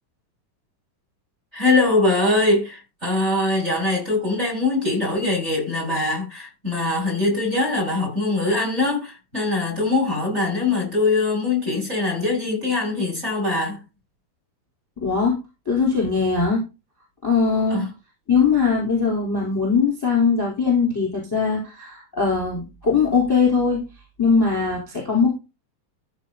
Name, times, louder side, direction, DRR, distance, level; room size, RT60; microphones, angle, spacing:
voice 1, 1.5-13.8 17.7-17.9, left 2 dB, 15° right, 5.8 m, -22 dB
voice 2, 15.0-15.4 15.7-16.6 17.2-17.9 18.3-23.8 24.2-25.3, left 5 dB, 5° left, 3.9 m, -20 dB
14.5 x 5.3 x 4.1 m
omnidirectional pair, 4.3 m